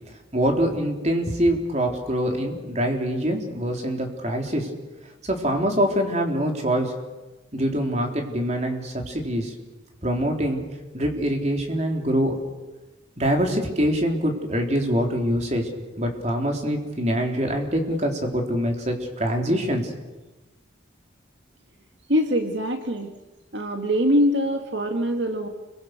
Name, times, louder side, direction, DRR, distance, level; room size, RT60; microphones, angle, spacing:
voice 1, 0.3-4.7 5.2-6.9 7.5-9.5 10.0-10.6 10.9-12.3 13.2-19.9, equal, 35° right, 2 dB, 4.1 m, -24 dB
voice 2, 22.1-23.1 23.5-25.5, equal, 65° right, 5 dB, 2.2 m, -23 dB
29.5 x 24.0 x 6.8 m, 1.1 s
head